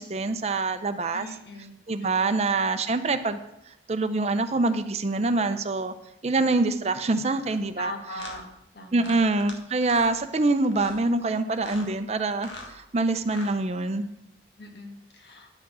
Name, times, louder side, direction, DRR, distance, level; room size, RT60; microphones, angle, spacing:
voice 1, 0.0-1.3 1.9-3.4 3.9-5.9 6.2-7.9 8.9-14.1, right 3 dB, 35° right, 10 dB, 0.5 m, -25 dB
voice 2, 1.1-1.7 2.0-2.3 7.8-8.4 8.7-9.2 14.6-15.5, left 2 dB, 65° left, 2 dB, 1.8 m, -40 dB
sound 1, 7.4-7.6 8.2-8.4 9.0-9.5 9.8-10.2 10.7-11.0 11.5-11.9 12.3-12.7 13.2-13.6, left 2 dB, 90° left, 1.6 m, -42 dB
10.5 x 6.1 x 6.1 m, 0.83 s
head